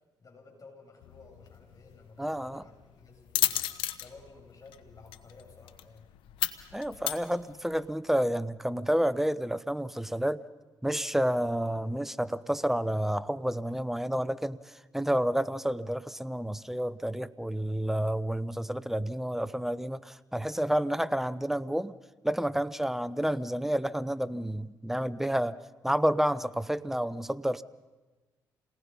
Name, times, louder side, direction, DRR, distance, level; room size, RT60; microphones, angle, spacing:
voice 1, 0.2-3.6 4.0-6.1 20.7-21.0 26.4-26.7, left 3 dB, 45° left, 1 dB, 7.4 m, -54 dB
sound 1, 1.0-7.9, left 15 dB, 85° left, 0.9 m, -35 dB
voice 2, 2.2-2.6 6.7-10.4 10.8-21.9 22.2-25.6 25.8-27.6, equal, 5° right, 17 dB, 0.8 m, -30 dB
28.0 x 19.0 x 5.5 m, 1.2 s
supercardioid pair, 60°, 8 cm